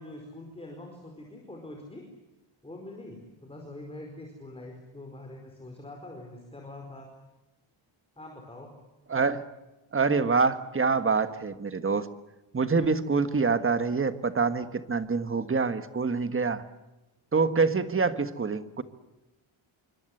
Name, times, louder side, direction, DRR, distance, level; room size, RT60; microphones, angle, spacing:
voice 1, 0.0-2.1 2.6-7.1 8.2-8.7, left 1 dB, 10° left, 2 dB, 4.7 m, -44 dB
voice 2, 9.1-9.4 9.9-12.1 12.5-16.6 17.3-18.8, right 4 dB, 25° right, 11 dB, 1.5 m, -26 dB
27.0 x 25.0 x 7.9 m, 1.0 s
wide cardioid pair, 175°, 50 cm